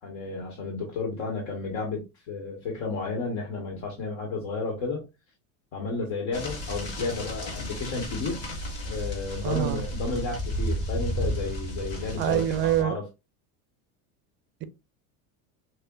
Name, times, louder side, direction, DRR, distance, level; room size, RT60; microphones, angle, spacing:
voice 1, 0.0-5.0 5.7-8.4 8.8-13.0, left 3 dB, 70° left, 1.5 m, -32 dB
sound 1, 6.3-12.8, equal, 35° left, 1.9 m, -33 dB
voice 2, 9.4-9.8 12.2-13.0, right 12 dB, 30° right, 0.4 m, -25 dB
6.5 x 2.2 x 2.4 m
supercardioid pair, 125°, 43 cm